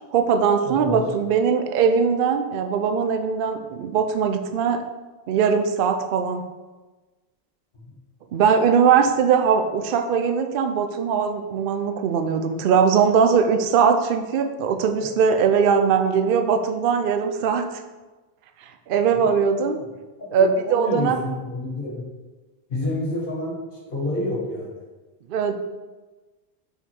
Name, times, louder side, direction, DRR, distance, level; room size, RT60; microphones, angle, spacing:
voice 1, 0.1-4.8 5.3-6.4 8.3-17.7 18.9-19.8 20.3-21.2 25.3-25.6, right 6 dB, 60° right, 7 dB, 0.7 m, -20 dB
voice 2, 0.6-1.1 7.8-7.9 15.0-15.1 19.1-19.3 20.2-22.0 22.7-23.6 23.9-24.7, left 2 dB, 50° left, -3 dB, 1.7 m, -28 dB
5.2 x 4.9 x 4.4 m, 1.2 s
omnidirectional pair, 1.1 m